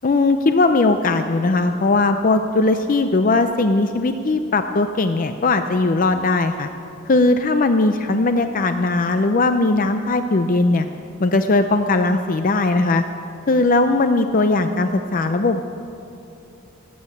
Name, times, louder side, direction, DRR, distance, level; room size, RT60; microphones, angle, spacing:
voice 1, 0.0-6.7 7.1-10.9 11.2-13.0 13.5-15.6, left 2 dB, 40° left, 8 dB, 0.5 m, -19 dB
17.5 x 8.6 x 8.4 m, 2.8 s
head